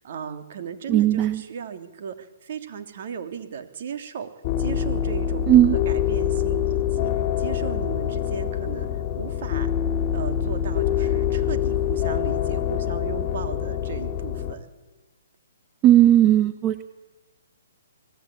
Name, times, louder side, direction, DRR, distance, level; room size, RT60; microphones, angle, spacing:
voice 1, 0.0-4.3 4.6-7.1 7.4-9.7 10.1-14.7, right 7 dB, 55° right, 7 dB, 3.2 m, -36 dB
voice 2, 0.9-1.4 5.5-5.7 15.8-16.8, right 12 dB, 25° right, 10 dB, 1.0 m, -16 dB
sound 1, 4.4-14.5, left 9 dB, 35° left, 2.4 m, -25 dB
25.0 x 18.5 x 8.7 m, 1.2 s
hypercardioid pair, 140°, 0 cm